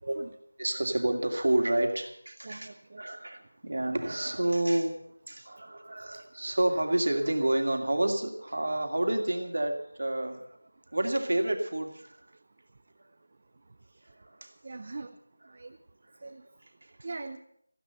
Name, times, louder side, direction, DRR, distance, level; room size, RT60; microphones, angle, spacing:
voice 1, 0.6-2.7 3.0-4.9 5.3-10.6 10.9-12.2 14.0-14.5 16.8-16.9, right 1 dB, 50° right, 4 dB, 2.4 m, -29 dB
voice 2, 2.4-3.0 14.6-15.1 15.5-15.8 16.2-16.4 17.0-17.4, right 3 dB, 25° right, 7 dB, 0.5 m, -41 dB
14.5 x 11.0 x 7.7 m, 0.70 s
figure-of-eight pair, 180°, 0 cm